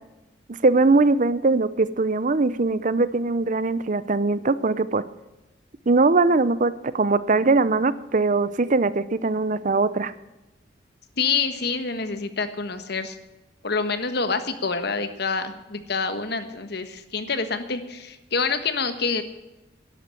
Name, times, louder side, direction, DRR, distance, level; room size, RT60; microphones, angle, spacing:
voice 1, 0.6-5.0 5.9-10.1, right 3 dB, 45° right, 16 dB, 0.7 m, -21 dB
voice 2, 11.2-13.2 13.6-19.2, left 4 dB, 60° left, 10 dB, 1.4 m, -27 dB
12.0 x 11.0 x 7.6 m, 1.0 s
head